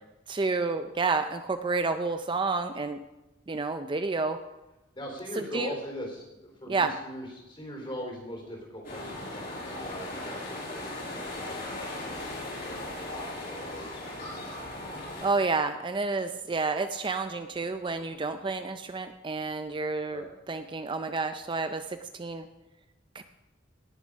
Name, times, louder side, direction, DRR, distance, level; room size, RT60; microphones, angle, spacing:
voice 1, 0.3-3.0 3.5-4.4 5.4-5.8 6.7-6.9 15.2-22.5 23.1-23.2, right 3 dB, 25° right, 9 dB, 0.4 m, -30 dB
voice 2, 4.9-14.4 20.1-20.3, equal, 25° left, 0 dB, 4.0 m, -41 dB
sound 1, 8.8-15.3, left 1 dB, 50° left, 5.2 m, -38 dB
18.5 x 7.2 x 5.2 m, 1.0 s
head